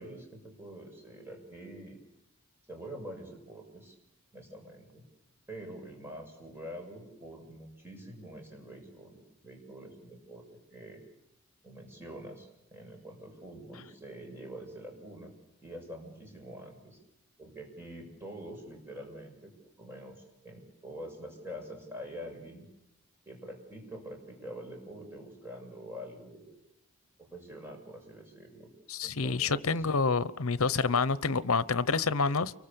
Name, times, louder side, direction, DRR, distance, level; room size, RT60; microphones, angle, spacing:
voice 1, 0.0-2.0 2.7-3.9 4.3-5.0 5.5-11.0 11.6-15.3 15.6-17.0 17.4-19.5 19.8-22.7 23.3-26.6 27.2-28.7 29.0-29.9, equal, 10° right, 1 dB, 6.8 m, -45 dB
voice 2, 28.9-32.5, left 4 dB, 75° left, 16 dB, 0.9 m, -28 dB
30.0 x 24.0 x 7.0 m, 0.84 s
head